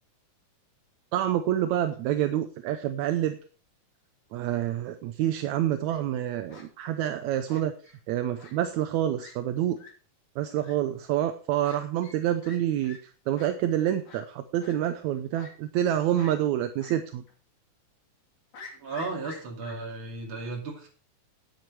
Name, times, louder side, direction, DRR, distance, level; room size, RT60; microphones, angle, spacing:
voice 1, 1.1-3.4 4.3-7.7 8.1-9.8 10.4-13.0 13.3-17.2, right 11 dB, 75° right, 9 dB, 1.9 m, -27 dB
Fowl, 5.6-6.0 6.5-6.7 7.5-8.0 8.4-8.5 8.8-8.9 9.2-9.3 9.8-9.9 10.6-10.7 11.6-11.8 12.0-12.2 12.4-12.6 12.8-13.0 13.4-13.5 14.1-14.2 14.6-14.7 15.3-15.9 16.2-16.3 16.8-17.0 17.3-17.4 18.5-19.7, left 4 dB, 55° left, 3.8 m, -47 dB
voice 2, 18.8-20.9, right 3 dB, 40° right, 0 dB, 3.2 m, -35 dB
9.8 x 9.3 x 4.6 m, 0.42 s
omnidirectional pair, 3.7 m